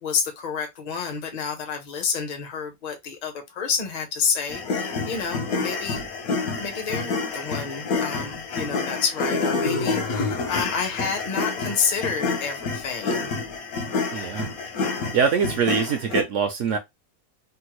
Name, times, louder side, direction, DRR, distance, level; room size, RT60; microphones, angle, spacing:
voice 1, 0.0-6.1 6.6-13.3, left 6 dB, 40° left, 0.6 m, -29 dB
sound 1, 4.5-16.2, left 4 dB, 70° left, 1.2 m, -28 dB
voice 2, 14.1-14.5 15.1-16.8, right 6 dB, 70° right, 0.7 m, -23 dB
3.5 x 2.1 x 2.9 m
omnidirectional pair, 1.6 m